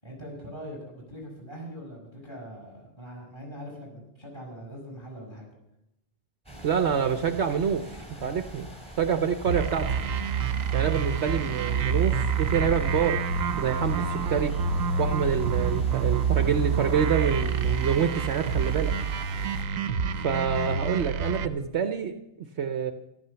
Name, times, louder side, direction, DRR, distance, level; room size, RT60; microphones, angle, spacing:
voice 1, 0.0-5.5, equal, 20° left, 0 dB, 6.4 m, -42 dB
sound 1, 6.5-19.7, right 1 dB, 5° left, 3.4 m, -44 dB
voice 2, 6.6-8.7 9.0-10.0 10.7-13.2 13.6-14.5 15.0-18.9 20.2-22.9, right 7 dB, 60° right, 7 dB, 1.1 m, -27 dB
sound 2, 9.5-21.5, right 6 dB, 85° right, 1.2 m, -27 dB
14.0 x 12.0 x 6.9 m, 0.87 s
omnidirectional pair, 1.4 m